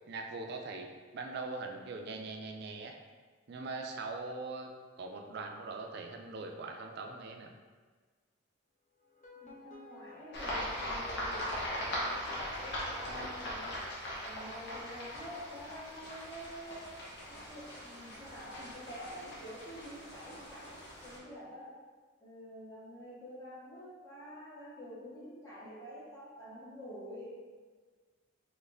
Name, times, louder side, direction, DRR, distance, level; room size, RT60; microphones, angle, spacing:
voice 1, 0.1-2.9 3.5-4.7 5.0-7.5, right 3 dB, 55° right, 3 dB, 0.4 m, -41 dB
sound 1, 9.0-12.2, left 3 dB, 40° left, 0.6 m, -56 dB
voice 2, 9.3-13.8 14.2-21.8 22.2-27.5, equal, 20° left, -9 dB, 0.9 m, -48 dB
sound 2, 10.3-21.2, equal, 60° left, 0.9 m, -40 dB
4.1 x 3.0 x 2.5 m, 1.5 s
head